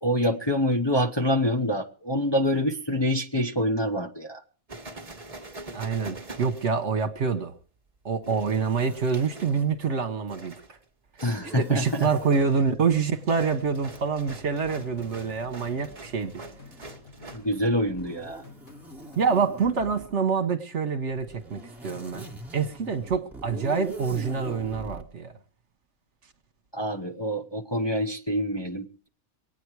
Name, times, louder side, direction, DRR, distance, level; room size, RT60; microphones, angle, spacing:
voice 1, 0.0-4.4 11.2-12.1 17.3-18.4 26.7-29.1, equal, 20° left, 0.8 m, -26 dB
sound 1, 4.7-7.3 8.2-9.6 10.3-10.8 11.2-11.6 12.0-17.6, right 2 dB, 25° right, 1.4 m, -44 dB
voice 2, 5.7-7.5 8.0-10.8 11.5-16.3 19.2-25.3, right 5 dB, 55° right, 1.5 m, -26 dB
Zipper (clothing), 8.3-9.7 11.4-12.5 13.9-17.1 17.9-20.2 21.1-25.1, right 2 dB, ahead, 1.4 m, -44 dB
sound 2, 12.1-19.5, left 3 dB, 80° left, 3.4 m, -50 dB
24.0 x 9.4 x 4.7 m
omnidirectional pair, 1.4 m